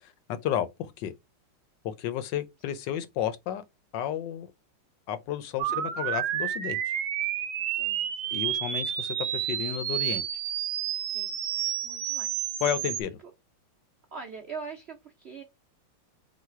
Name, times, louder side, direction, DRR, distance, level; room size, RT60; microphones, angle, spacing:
voice 1, 0.4-1.1 1.8-3.6 3.9-4.5 5.1-6.8 8.3-10.2 12.6-13.2, left 10 dB, 75° left, 1.2 m, -32 dB
sound 1, 5.6-13.0, right 11 dB, 80° right, 1.3 m, -30 dB
voice 2, 5.7-6.1 7.7-8.4 11.0-11.4 11.8-12.5 14.1-15.4, right 5 dB, 60° right, 0.6 m, -43 dB
4.0 x 2.3 x 4.5 m
omnidirectional pair, 2.1 m